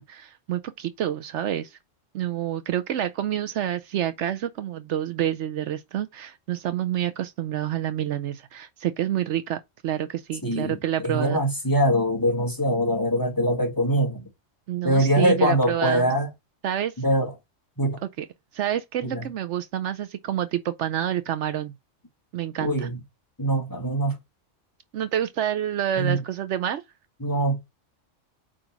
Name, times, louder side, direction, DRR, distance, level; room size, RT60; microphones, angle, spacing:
voice 1, 0.0-1.8 2.1-11.4 14.7-16.0 16.6-16.9 18.2-18.3 18.5-21.7 22.3-22.9 24.9-26.8, right 11 dB, 70° right, 0.9 m, -28 dB
voice 2, 10.4-10.8 11.0-14.2 14.8-16.3 17.0-17.3 17.8-18.0 19.0-19.3 22.6-23.0 23.4-24.2 26.0-26.2 27.2-27.6, right 1 dB, 15° left, 1.9 m, -23 dB
5.0 x 3.9 x 5.8 m
omnidirectional pair, 1.3 m